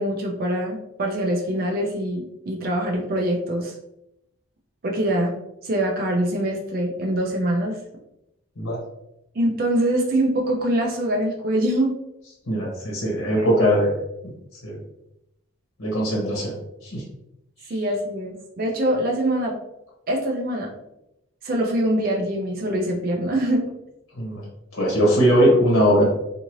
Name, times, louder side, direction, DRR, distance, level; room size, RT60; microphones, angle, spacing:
voice 1, 0.0-3.7 4.8-5.3 5.6-7.8 9.3-11.9 13.3-13.5 17.7-19.5 20.1-20.7 21.4-23.6, right 1 dB, 45° right, -1 dB, 0.4 m, -24 dB
voice 2, 12.5-14.0 14.6-14.8 15.8-16.5 16.8-17.0 24.2-24.4 24.7-26.0, equal, 80° left, -3 dB, 1.0 m, -20 dB
2.7 x 2.5 x 3.0 m, 0.84 s
head